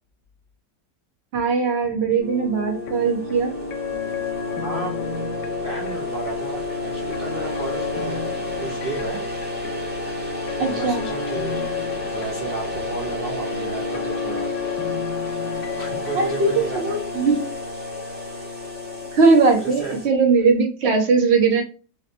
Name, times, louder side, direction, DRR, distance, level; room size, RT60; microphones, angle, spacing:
voice 1, 1.3-3.5 10.6-11.1 16.1-17.4 19.1-21.6, right 4 dB, 50° right, 0.9 m, -19 dB
sound 1, 2.2-20.1, left 2 dB, 10° right, 0.4 m, -31 dB
sound 2, 2.7-19.2, left 6 dB, 75° left, 1.1 m, -33 dB
voice 2, 4.6-5.0 5.6-8.3 8.6-9.2 10.7-11.8 12.1-14.5 15.8-17.0 19.6-20.0, right 3 dB, 65° right, 0.5 m, -33 dB
3.1 x 2.9 x 2.6 m
omnidirectional pair, 1.9 m